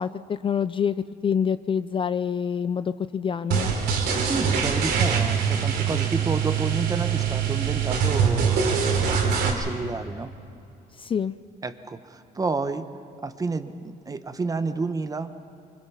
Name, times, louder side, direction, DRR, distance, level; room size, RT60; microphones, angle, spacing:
voice 1, 0.0-3.7 11.0-11.4, left 7 dB, 30° left, 13 dB, 0.5 m, -26 dB
sound 1, 3.5-9.5, right 6 dB, 80° right, 3.4 m, -23 dB
voice 2, 4.2-8.7 9.1-10.3 11.6-12.8 13.2-15.3, right 3 dB, 20° right, 10 dB, 1.1 m, -30 dB
25.0 x 25.0 x 5.7 m, 2.5 s
cardioid pair, 110°, 17 cm